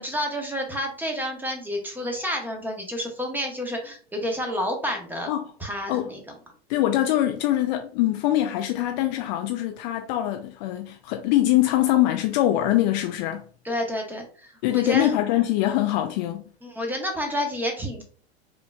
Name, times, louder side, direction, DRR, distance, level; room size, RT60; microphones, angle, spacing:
voice 1, 0.0-5.3 5.6-6.2 13.6-15.1 16.6-18.0, equal, 5° right, 1.1 m, -29 dB
voice 2, 6.7-13.5 14.6-16.4, left 14 dB, 45° left, 0.5 m, -23 dB
5.0 x 3.1 x 2.3 m
figure-of-eight pair, 85°, 32 cm